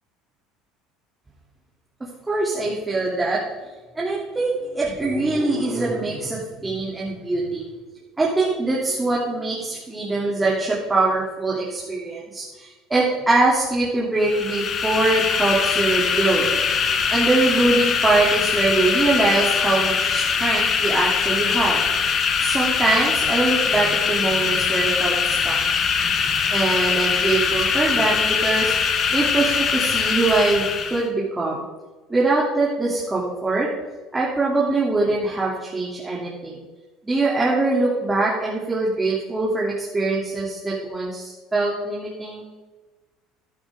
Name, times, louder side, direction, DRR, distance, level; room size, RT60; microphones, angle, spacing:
voice 1, 2.3-3.4 3.9-7.6 8.2-16.5 17.1-21.8 22.4-25.6 26.5-30.6 30.9-31.6 32.1-33.7 34.1-36.6 37.0-42.5, right 2 dB, 15° right, -5 dB, 3.1 m, -23 dB
sound 1, 14.2-31.1, left 6 dB, 45° left, 1.5 m, -22 dB
13.5 x 11.5 x 3.8 m, 1.3 s
hypercardioid pair, 80°, 0 cm